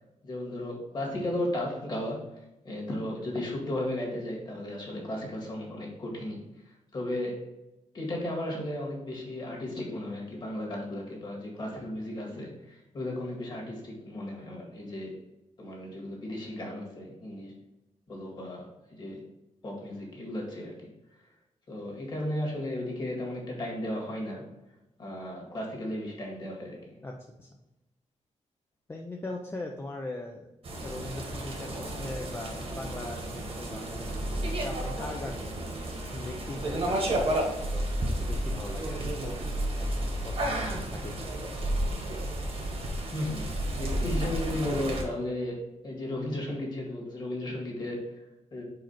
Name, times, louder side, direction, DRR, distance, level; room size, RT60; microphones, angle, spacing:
voice 1, 0.2-2.2 2.6-6.4 6.9-7.4 7.9-15.1 15.6-17.5 18.1-18.6 18.9-19.2 19.6-20.7 21.7-24.4 25.0-26.8 43.1-43.5 43.8-45.5 45.8-48.0 48.5-48.6, left 1 dB, 35° left, -2 dB, 1.9 m, -34 dB
voice 2, 28.9-30.5 30.8-35.6 36.1-37.9 38.2-39.0 39.8-41.2, left 2 dB, 20° left, 1 dB, 0.5 m, -40 dB
sound 1, 30.6-45.0, right 1 dB, 50° right, 1.3 m, -32 dB
4.8 x 4.5 x 4.4 m, 0.96 s
wide cardioid pair, 155°, 12 cm